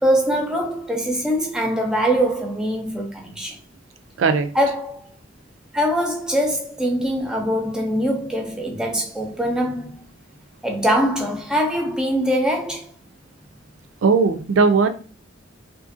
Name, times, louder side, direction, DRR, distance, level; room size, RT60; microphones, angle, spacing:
voice 1, 0.0-3.6 4.5-5.0 5.7-10.0 10.6-12.9, equal, 5° right, 0.4 m, -22 dB
voice 2, 14.0-14.9, right 4 dB, 85° right, 0.4 m, -17 dB
2.6 x 2.5 x 2.6 m
head